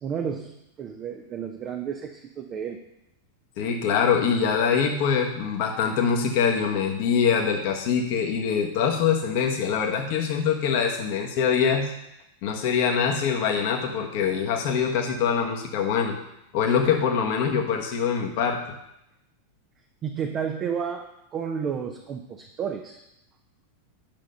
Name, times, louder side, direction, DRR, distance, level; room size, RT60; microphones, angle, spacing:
voice 1, 0.0-2.8 20.0-23.0, right 7 dB, 30° right, 4 dB, 0.9 m, -32 dB
voice 2, 3.6-11.9 12.4-16.2 16.5-18.6, left 6 dB, 45° left, 1 dB, 1.4 m, -24 dB
10.5 x 6.4 x 5.4 m, 0.86 s
figure-of-eight pair, 90°, 0 cm